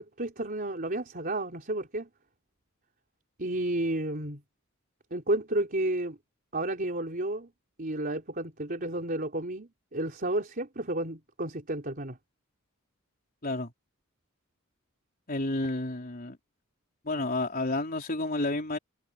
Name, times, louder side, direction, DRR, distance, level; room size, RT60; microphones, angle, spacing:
voice 1, 0.0-2.1 3.4-4.4 5.1-6.2 6.5-7.5 7.8-12.2, right 1 dB, 45° right, 4.0 m, -31 dB
voice 2, 15.3-16.4 17.1-18.8, left 2 dB, 45° left, 3.8 m, -30 dB
head